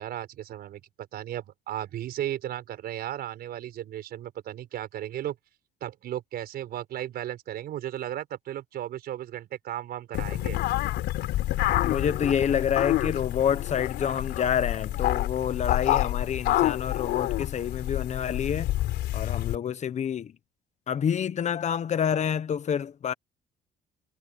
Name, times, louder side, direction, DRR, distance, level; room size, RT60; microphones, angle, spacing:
voice 1, 0.0-5.4 5.8-10.6, right 12 dB, 65° right, 5.5 m, -35 dB
sound 1, 10.1-19.6, left 15 dB, 80° left, 3.8 m, -28 dB
voice 2, 11.8-18.7 19.1-20.3 20.9-23.1, left 8 dB, 45° left, 1.2 m, -28 dB
cardioid pair, 110°, 17 cm